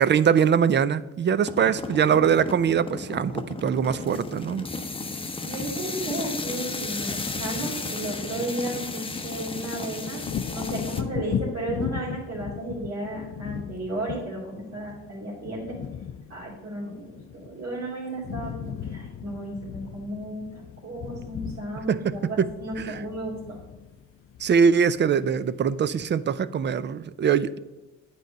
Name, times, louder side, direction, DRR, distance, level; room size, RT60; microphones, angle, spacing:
voice 1, 0.0-4.7 21.9-22.5 22.9-23.0 24.4-27.6, right 7 dB, 35° right, 16 dB, 0.5 m, -22 dB
sound 1, 1.5-11.0, left 3 dB, 20° left, 0.8 m, -34 dB
voice 2, 5.4-15.8 16.3-23.6, right 2 dB, 50° right, -7 dB, 3.0 m, -34 dB
Wind / Thunder, 10.2-17.8 18.1-25.3 25.7-25.9, left 8 dB, 45° left, 0.5 m, -36 dB
9.2 x 4.8 x 5.2 m, 1.1 s
cardioid pair, 90°, 30 cm